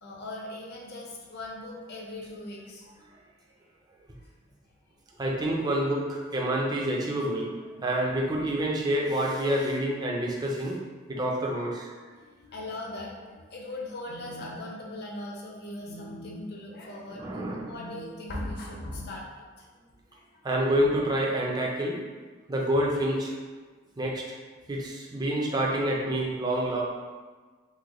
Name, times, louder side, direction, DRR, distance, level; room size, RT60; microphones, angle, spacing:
voice 1, 0.0-2.9 4.2-4.6 7.8-7.9 12.0-19.3 19.6-19.7 20.1-20.5, left 1 dB, 55° left, -2 dB, 0.6 m, -39 dB
voice 2, 5.2-7.6 7.8-10.8 11.1-11.9 17.1-17.7 20.4-22.0 22.5-23.3 24.0-24.2 24.7-26.8, right 1 dB, 20° right, -2 dB, 0.4 m, -27 dB
3.1 x 2.2 x 3.6 m, 1.4 s
head